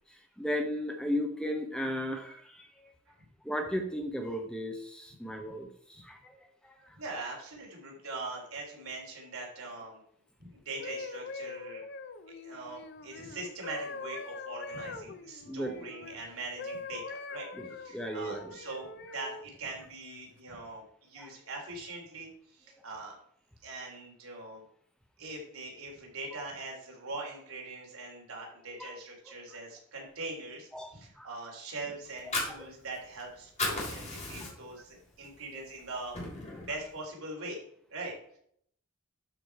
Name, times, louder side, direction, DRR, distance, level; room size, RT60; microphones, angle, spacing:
voice 1, 0.1-2.9 3.4-7.0 15.4-15.9 17.6-18.5 21.2-21.3 28.8-28.9 30.7-31.3 32.3-32.7 34.4-34.6 35.5-35.6, equal, 5° left, 4 dB, 0.9 m, -36 dB
voice 2, 7.0-10.0 10.4-11.9 12.4-17.5 17.7-23.1 23.6-24.6 25.2-36.2 36.7-37.6 37.9-38.1, right 2 dB, 70° right, -1 dB, 3.6 m, -42 dB
sound 1, 10.6-16.2 16.6-19.5 20.1-20.4, left 4 dB, 50° left, 0.7 m, -43 dB
Fire, 32.1-33.2 33.5-34.8 35.2-35.4 35.8-36.7, left 2 dB, 30° left, 3.5 m, -35 dB
12.0 x 5.1 x 4.7 m, 0.66 s
head